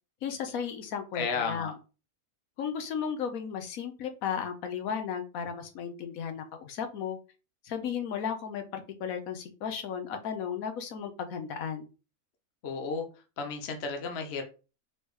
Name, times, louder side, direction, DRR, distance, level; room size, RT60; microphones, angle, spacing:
voice 1, 0.2-1.7 2.6-7.2 7.6-11.9, left 7 dB, 75° left, 7 dB, 1.2 m, -35 dB
voice 2, 1.1-1.7 12.6-13.0 13.4-14.4, left 5 dB, 55° left, 4 dB, 0.9 m, -33 dB
4.4 x 3.2 x 3.2 m, 0.32 s
omnidirectional pair, 1.5 m